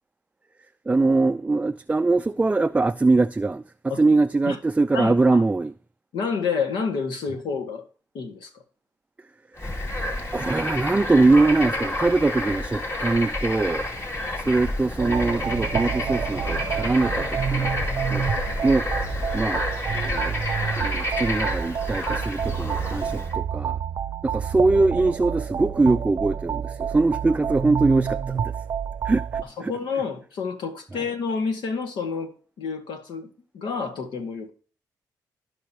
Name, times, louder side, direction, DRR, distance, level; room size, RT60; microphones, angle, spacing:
voice 1, 0.9-5.7 10.3-13.8 14.1-17.7 18.1-18.2 18.6-18.9 19.3-19.6 19.9-20.4 20.8-23.8 24.2-28.5 29.0-29.7, right 3 dB, 20° right, 0.3 m, -22 dB
voice 2, 4.9-5.4 6.1-7.8 8.1-8.5 18.5-18.6 29.6-34.5, left 5 dB, 80° left, 1.8 m, -29 dB
Bird / Frog, 9.6-23.3, left 1 dB, 35° left, 2.5 m, -29 dB
sound 1, 15.0-29.4, right 8 dB, 55° right, 0.6 m, -29 dB
15.5 x 5.5 x 2.9 m
supercardioid pair, 55°, 8 cm